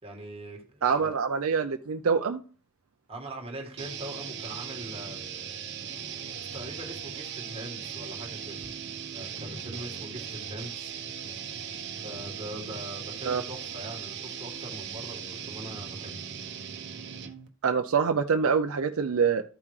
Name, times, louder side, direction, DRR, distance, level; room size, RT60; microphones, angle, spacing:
voice 1, 0.0-1.2 3.1-5.2 6.2-8.7 9.1-10.9 11.9-16.2, right 1 dB, 30° right, 1.7 m, -42 dB
voice 2, 0.8-2.4 13.3-13.4 17.6-19.4, right 6 dB, 75° right, 0.5 m, -25 dB
sound 1, 3.8-17.5, right 7 dB, 55° right, 1.0 m, -38 dB
13.0 x 5.5 x 3.2 m
head